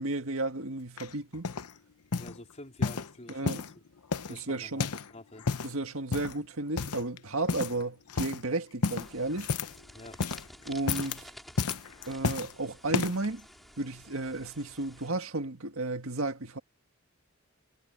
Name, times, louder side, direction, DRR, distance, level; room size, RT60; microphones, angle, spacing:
voice 1, 0.0-1.5 3.3-3.6 4.3-4.9 5.6-9.5 10.7-11.3 12.1-13.5 13.8-16.6, right 2 dB, 65° right, 1.7 m, -33 dB
sound 1, 1.0-1.7 2.1-2.4 2.8-3.7 4.1-5.1 5.3-5.7 6.1-6.4 6.8-7.2 7.5-7.8 8.1-8.4 8.8-9.8 10.1-10.5 10.8-11.2 11.6-12.5 12.9-13.3 13.9-14.0, left 4 dB, 90° left, 0.9 m, -32 dB
voice 2, 2.2-3.8 4.1-5.5 9.9-10.2, left 1 dB, 30° left, 4.2 m, -48 dB
sound 2, 8.8-15.1, equal, ahead, 3.3 m, -51 dB
head